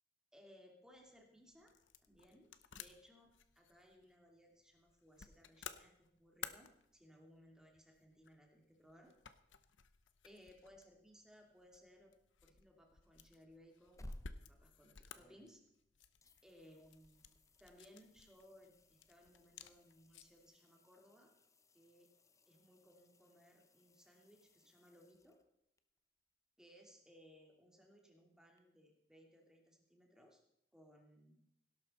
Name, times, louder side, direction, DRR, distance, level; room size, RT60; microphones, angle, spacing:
voice 1, 0.3-1.7 2.1-9.1 10.2-12.1 12.4-14.1 14.5-15.6 16.4-17.3 17.6-21.3 21.7-22.1 22.5-25.4 26.6-30.4 30.7-31.4, equal, 5° right, 1 dB, 2.6 m, -64 dB
sound 1, 0.9-20.5, left 8 dB, 85° left, 0.8 m, -57 dB
sound 2, 13.7-15.8 16.2-25.8 28.6-28.7, left 1 dB, 15° left, 0.7 m, -61 dB
17.5 x 12.0 x 4.3 m, 0.77 s
head